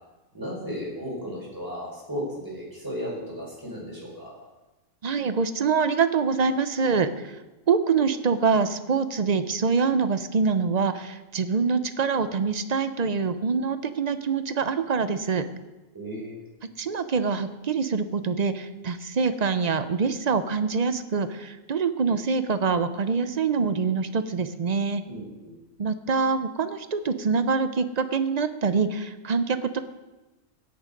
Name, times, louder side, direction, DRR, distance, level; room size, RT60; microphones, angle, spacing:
voice 1, 0.3-4.3 15.9-16.3 25.1-25.5, equal, 15° right, -5 dB, 5.3 m, -35 dB
voice 2, 5.0-7.1 7.7-15.4 16.8-25.0 25.8-29.8, right 5 dB, 45° right, 11 dB, 0.6 m, -25 dB
16.5 x 6.7 x 5.3 m, 1.1 s
omnidirectional pair, 1.3 m